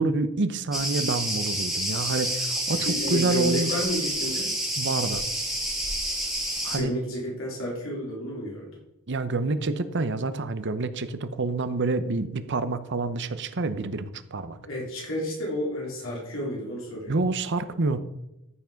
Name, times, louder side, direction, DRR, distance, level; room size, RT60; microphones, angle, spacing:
voice 1, 0.0-3.7 4.8-5.2 6.6-6.9 9.1-14.6 17.1-18.0, right 3 dB, 55° right, 12 dB, 0.8 m, -27 dB
Cricket, 0.7-6.8, right 1 dB, ahead, 2.6 m, -29 dB
voice 2, 2.7-4.5 6.7-8.7 14.7-17.2, equal, 65° left, -4 dB, 3.9 m, -31 dB
14.0 x 6.0 x 5.1 m, 0.88 s
head